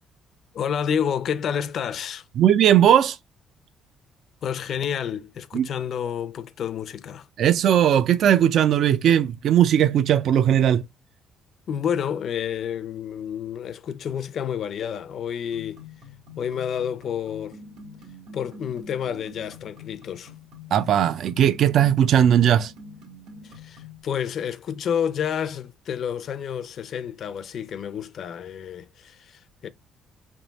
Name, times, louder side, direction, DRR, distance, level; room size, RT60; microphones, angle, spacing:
voice 1, 0.5-2.2 4.4-7.3 11.7-15.8 16.4-17.6 18.3-20.3 23.4-29.7, left 8 dB, 50° left, 0.5 m, -29 dB
voice 2, 2.4-3.2 5.5-5.7 7.4-10.8 20.7-22.7, right 10 dB, 55° right, 0.3 m, -18 dB
sound 1, 15.5-24.0, left 3 dB, 90° right, 1.9 m, -45 dB
3.5 x 2.6 x 4.0 m
cardioid pair, 150°, 0 cm